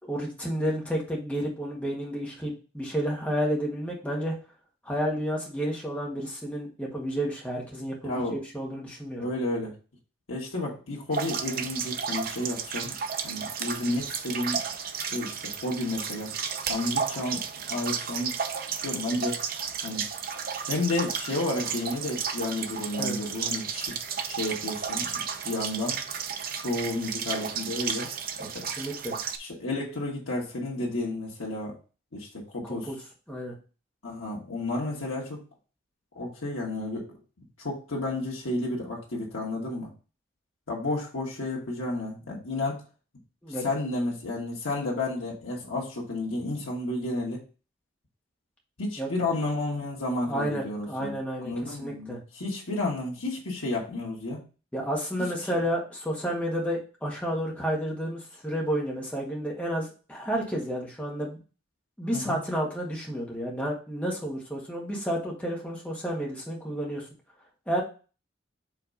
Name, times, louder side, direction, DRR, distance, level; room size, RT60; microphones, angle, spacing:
voice 1, 0.0-4.4 4.8-8.2 8.5-9.2 23.0-23.2 28.4-28.5 28.8-29.2 32.6-33.0 33.3-33.5 43.4-43.6 49.0-49.1 50.3-52.2 54.7-61.4 62.0-67.1 67.7-67.8, equal, 5° left, -3 dB, 1.6 m, -31 dB
voice 2, 8.0-8.4 9.2-9.7 10.3-12.9 13.2-14.6 15.0-16.3 16.7-18.3 18.8-19.4 19.8-20.0 20.7-26.0 26.5-28.1 28.5-28.7 29.4-31.8 32.1-32.9 34.0-35.4 36.1-37.1 37.6-39.9 40.7-42.8 43.6-47.4 48.8-54.4 62.1-62.4, left 2 dB, 85° left, -4 dB, 1.5 m, -31 dB
sound 1, 11.1-29.4, right 6 dB, 45° right, 0.6 m, -33 dB
4.9 x 3.6 x 5.3 m, 0.35 s
head